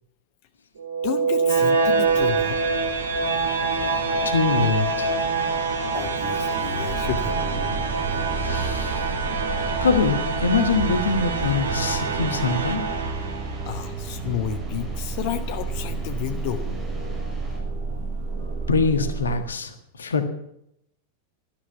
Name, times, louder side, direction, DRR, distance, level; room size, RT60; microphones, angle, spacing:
sound 1, 0.8-13.8, right 4 dB, 70° right, 1.8 m, -25 dB
voice 1, 1.0-2.6 5.9-7.8 13.6-16.7, left 10 dB, 45° left, 10 dB, 1.0 m, -31 dB
sound 2, 2.0-17.6, right 1 dB, 15° right, 6.4 m, -42 dB
voice 2, 4.2-5.1 8.4-9.1 9.8-12.9 18.7-20.3, left 4 dB, 70° left, 9 dB, 1.6 m, -24 dB
sound 3, 6.9-19.4, right 4 dB, 50° right, 3.5 m, -31 dB
13.0 x 13.0 x 7.1 m, 0.76 s
figure-of-eight pair, 90°, 0 cm